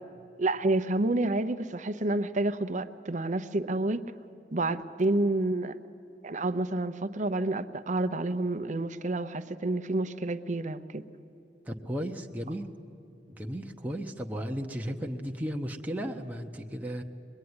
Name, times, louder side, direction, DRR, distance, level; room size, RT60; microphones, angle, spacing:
voice 1, 0.4-4.0 4.5-5.8 6.2-11.0, right 2 dB, 45° right, 11 dB, 0.8 m, -29 dB
voice 2, 11.7-12.7 13.3-17.0, equal, 10° right, 2 dB, 0.9 m, -35 dB
24.5 x 21.5 x 9.7 m, 2.9 s
head